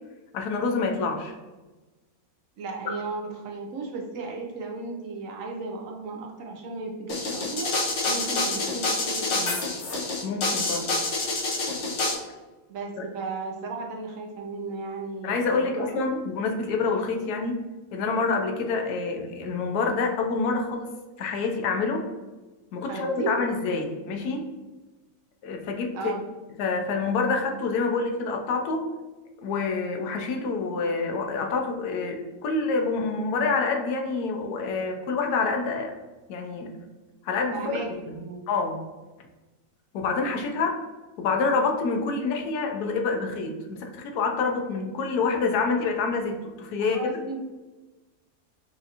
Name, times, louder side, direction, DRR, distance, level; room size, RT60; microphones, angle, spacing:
voice 1, 0.3-1.3 10.2-11.0 13.0-13.1 15.2-17.6 17.9-20.9 21.2-22.1 22.7-24.5 25.4-26.2 26.6-28.9 29.4-35.9 36.3-36.7 37.2-37.8 38.1-38.2 38.5-38.8 39.9-40.8 41.2-47.1, left 4 dB, 85° left, 3 dB, 1.1 m, -27 dB
voice 2, 2.6-7.7 8.1-9.6 12.7-16.4 22.8-23.4 25.9-26.2 37.5-38.4 46.8-47.4, right 3 dB, 70° right, 1 dB, 0.9 m, -35 dB
sound 1, 7.1-12.1, left 2 dB, 55° left, 1.1 m, -27 dB
5.6 x 2.5 x 2.8 m, 1.2 s
omnidirectional pair, 1.6 m